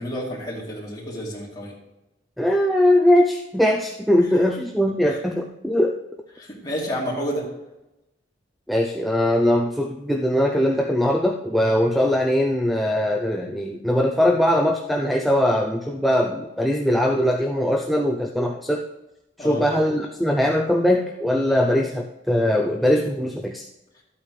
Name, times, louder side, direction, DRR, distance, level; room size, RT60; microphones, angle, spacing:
voice 1, 0.0-1.7 5.1-5.2 6.3-7.4 19.4-19.6, equal, 25° left, -5 dB, 3.0 m, -30 dB
voice 2, 2.4-5.9 8.7-18.8 19.4-23.6, left 1 dB, ahead, 1 dB, 0.5 m, -21 dB
13.0 x 8.5 x 3.3 m, 0.98 s
head